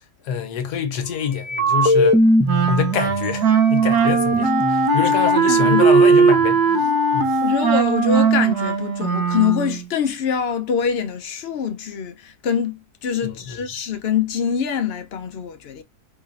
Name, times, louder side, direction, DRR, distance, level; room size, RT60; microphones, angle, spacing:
voice 1, 0.2-2.2 2.7-6.6 7.1-7.4 13.2-13.6, left 7 dB, 85° left, 1.4 m, -25 dB
sound 1, 1.4-2.7 3.2-3.3 3.6-4.9, equal, 10° right, 0.5 m, -19 dB
Wind instrument woodwind instrument, 2.5-9.8, right 5 dB, 80° right, 1.4 m, -18 dB
voice 2, 5.5-5.8 6.8-7.0 7.4-15.8, left 7 dB, 50° left, 0.8 m, -24 dB
3.7 x 3.0 x 2.5 m
omnidirectional pair, 1.7 m